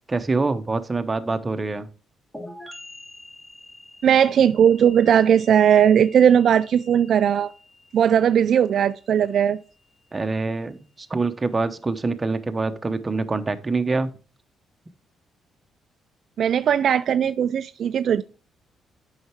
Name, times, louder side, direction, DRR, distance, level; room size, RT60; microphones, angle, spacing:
voice 1, 0.1-1.9 10.1-14.1, right 3 dB, 25° right, 0.9 m, -25 dB
sound 1, 2.3-9.9, left 1 dB, 10° left, 1.9 m, -46 dB
voice 2, 4.0-7.5 7.9-9.6 16.4-18.2, right 9 dB, 65° right, 0.3 m, -18 dB
7.9 x 5.7 x 4.5 m
cardioid pair, 90°, 0 cm